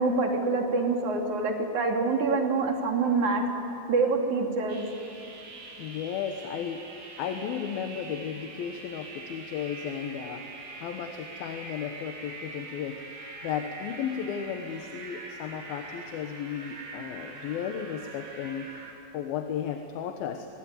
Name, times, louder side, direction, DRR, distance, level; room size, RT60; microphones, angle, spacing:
voice 1, 0.0-3.4 3.9-4.9, right 3 dB, 55° right, 2 dB, 4.1 m, -26 dB
sound 1, 4.7-18.9, right 3 dB, 85° right, 5.4 m, -44 dB
voice 2, 5.8-6.9 7.2-10.5 10.8-13.0 13.4-18.7 19.1-20.5, left 8 dB, 80° left, 6 dB, 3.0 m, -34 dB
25.0 x 22.5 x 9.7 m, 2.7 s
omnidirectional pair, 4.2 m